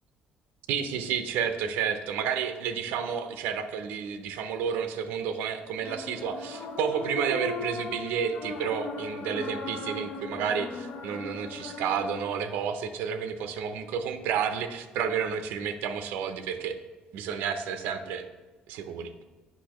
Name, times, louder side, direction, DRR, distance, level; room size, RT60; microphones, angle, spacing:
voice 1, 0.7-16.8 17.1-18.3 18.7-19.1, right 7 dB, 85° right, 8 dB, 0.6 m, -31 dB
sound 1, 5.8-12.2, left 3 dB, 60° left, 0.8 m, -38 dB
8.4 x 5.5 x 3.0 m, 1.3 s
cardioid pair, 175°, 3 cm